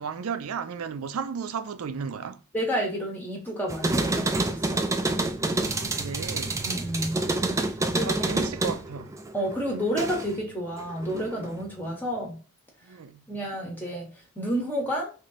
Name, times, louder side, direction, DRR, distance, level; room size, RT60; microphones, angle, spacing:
voice 1, 0.0-2.4 5.6-6.6 7.9-9.1 12.8-13.3, right 6 dB, 80° right, 0.4 m, -34 dB
voice 2, 2.5-4.9 6.6-7.2 7.9-8.2 9.3-12.4 13.3-14.1 14.4-15.1, equal, 10° left, 0.8 m, -30 dB
sound 1, 3.7-10.4 10.8-11.6, right 2 dB, 15° right, 0.3 m, -28 dB
3.0 x 2.7 x 4.0 m
head